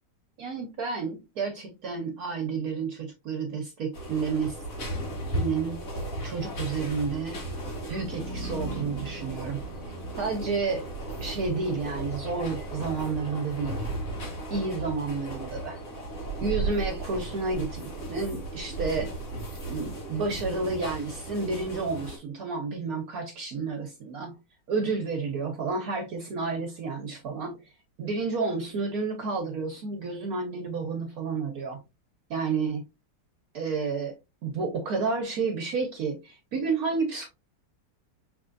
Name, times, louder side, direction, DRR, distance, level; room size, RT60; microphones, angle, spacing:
voice 1, 0.4-4.5 5.3-5.8 6.2-7.4 7.9-9.6 10.2-10.9 11.2-13.9 14.5-15.8 16.4-19.1 19.7-24.4 24.7-27.6 28.0-31.8 32.3-32.8 33.5-34.1 34.4-37.3, right 4 dB, 60° right, 1.3 m, -30 dB
sound 1, 3.9-22.2, right 1 dB, 50° left, 1.9 m, -36 dB
sound 2, 7.8-13.7, right 1 dB, 30° left, 1.5 m, -43 dB
5.4 x 3.6 x 2.5 m
omnidirectional pair, 1.9 m